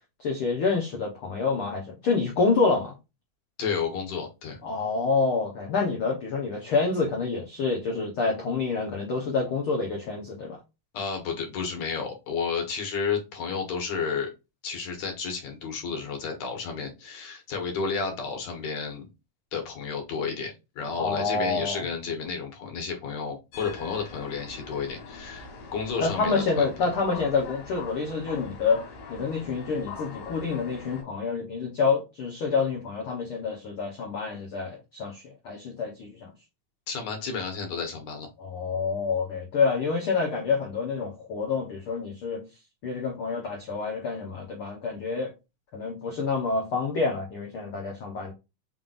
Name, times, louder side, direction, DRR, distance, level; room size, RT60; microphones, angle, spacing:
voice 1, 0.2-2.9 4.6-10.6 20.9-21.9 26.0-28.8 29.1-36.3 38.4-42.5 42.8-45.3 45.7-48.3, left 4 dB, 90° left, 1.2 m, -27 dB
voice 2, 3.6-4.6 10.9-14.3 14.6-19.1 19.5-26.7 36.9-38.3, left 5 dB, 60° left, 2.2 m, -32 dB
sound 1, 23.5-31.0, left 4 dB, 75° left, 2.9 m, -42 dB
5.7 x 3.6 x 2.5 m
omnidirectional pair, 4.1 m